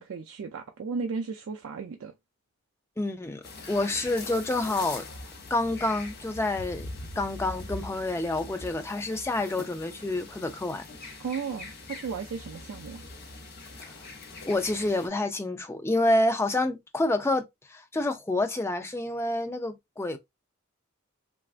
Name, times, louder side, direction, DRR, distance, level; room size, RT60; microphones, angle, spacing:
voice 1, 0.0-2.1 11.2-13.0, right 5 dB, 70° right, 0.4 m, -35 dB
voice 2, 3.0-5.0 5.5-6.9 7.2-10.8 14.5-20.2, left 2 dB, 10° left, 0.4 m, -28 dB
sound 1, 3.4-15.1, left 2 dB, 50° left, 0.7 m, -42 dB
3.3 x 2.3 x 2.4 m
head